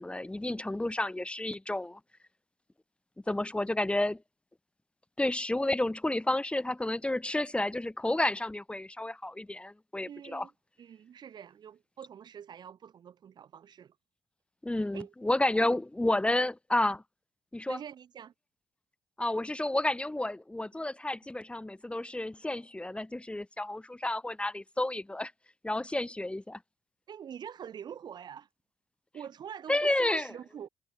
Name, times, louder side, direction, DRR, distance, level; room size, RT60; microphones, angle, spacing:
voice 1, 0.0-2.0 3.3-4.2 5.2-10.5 14.6-17.0 17.5-17.8 19.2-25.3 25.6-26.6 29.7-30.3, left 1 dB, 15° left, 3.1 m, -31 dB
voice 2, 10.0-10.5 10.8-14.0 14.9-15.1 15.6-15.7 17.7-18.3 27.1-28.5 29.1-30.7, right 8 dB, 60° right, 3.8 m, -45 dB
supercardioid pair, 60°, 8 cm